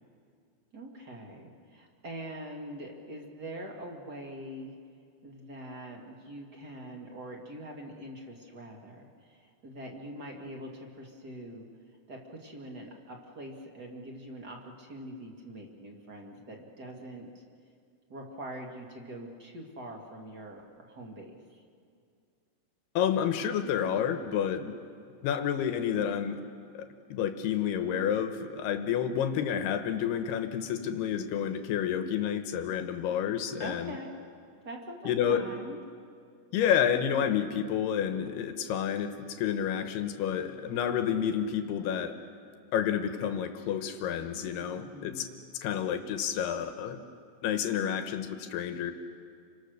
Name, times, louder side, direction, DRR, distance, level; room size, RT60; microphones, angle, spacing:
voice 1, 0.7-4.7 5.2-11.7 12.1-17.4 18.1-21.6 33.6-34.1 34.6-35.8 44.6-45.5, right 1 dB, 40° right, 1 dB, 1.4 m, -44 dB
voice 2, 23.0-24.7 25.2-26.4 26.7-34.0 35.1-35.5 36.5-42.2 42.7-45.3 45.6-47.0 47.4-48.9, left 9 dB, 70° left, 7 dB, 2.7 m, -30 dB
30.0 x 24.5 x 6.6 m, 2.3 s
omnidirectional pair, 5.3 m